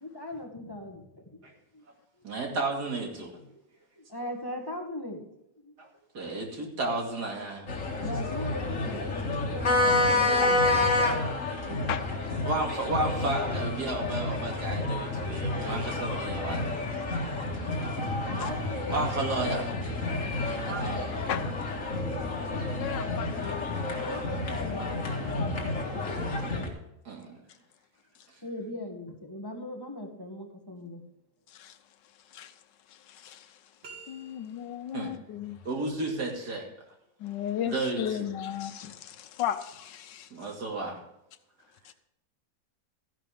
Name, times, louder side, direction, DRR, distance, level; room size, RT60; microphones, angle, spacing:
voice 1, 0.0-1.8 2.2-2.3 3.5-3.6 4.0-5.2 5.6-5.7 8.0-11.9 18.3-19.8 20.4-21.3 23.9-26.2 28.4-31.0, left 1 dB, 15° left, 2 dB, 1.6 m, -40 dB
voice 2, 2.2-3.3 5.8-5.9 6.1-7.7 12.4-16.8 18.9-19.6 20.7-21.1 27.0-27.3 34.9-35.1 35.6-36.6 37.7-38.3 40.3-41.0, right 2 dB, 65° right, 1 dB, 2.8 m, -32 dB
sound 1, 7.7-26.7, left 2 dB, 45° left, 2.3 m, -29 dB
voice 3, 22.7-23.6 31.5-31.8 32.3-32.5 32.9-33.6 34.1-35.6 37.2-40.3 41.8-41.9, left 10 dB, 85° left, 10 dB, 1.5 m, -35 dB
sound 2, 33.8-34.9, right 4 dB, 90° right, 2.6 m, -49 dB
13.5 x 11.0 x 3.5 m, 0.83 s
omnidirectional pair, 1.9 m